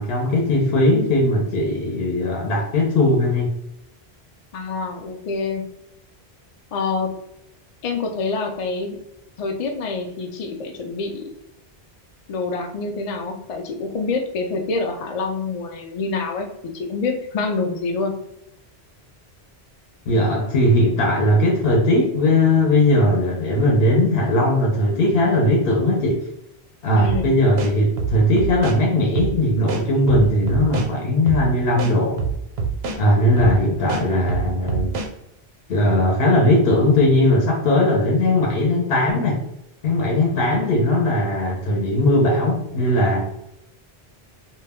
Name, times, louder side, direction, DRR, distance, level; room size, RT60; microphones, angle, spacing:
voice 1, 0.0-3.5 20.1-26.2 26.8-32.2 33.0-35.0 35.7-39.4 39.8-43.3, left 1 dB, 70° left, -1 dB, 0.8 m, -18 dB
voice 2, 4.5-5.6 6.7-7.1 7.8-9.0 9.4-11.3 12.3-16.5 16.7-18.1 26.9-27.4, left 4 dB, 55° left, 3 dB, 0.4 m, -26 dB
sound 1, 27.0-27.2 27.6-28.8 29.1-29.3 29.7-30.9 31.3-31.4 31.8-33.0 33.4-33.5 33.9-35.1, right 5 dB, 80° right, 0.8 m, -25 dB
2.2 x 2.1 x 3.4 m, 0.83 s
omnidirectional pair, 1.0 m